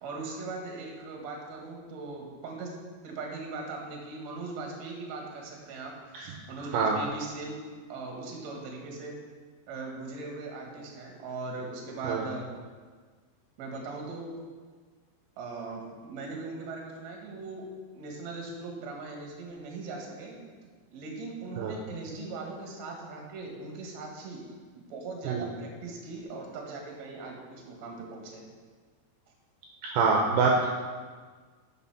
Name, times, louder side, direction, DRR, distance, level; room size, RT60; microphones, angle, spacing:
voice 1, 0.0-2.7 3.0-7.6 7.9-9.1 9.7-12.5 13.6-14.3 15.4-17.7 17.9-20.4 20.9-24.4 24.7-28.5, right 3 dB, 60° right, 0 dB, 1.9 m, -39 dB
voice 2, 29.8-30.7, right 4 dB, 80° right, 0 dB, 2.2 m, -25 dB
8.1 x 5.9 x 5.8 m, 1.5 s
omnidirectional pair, 5.1 m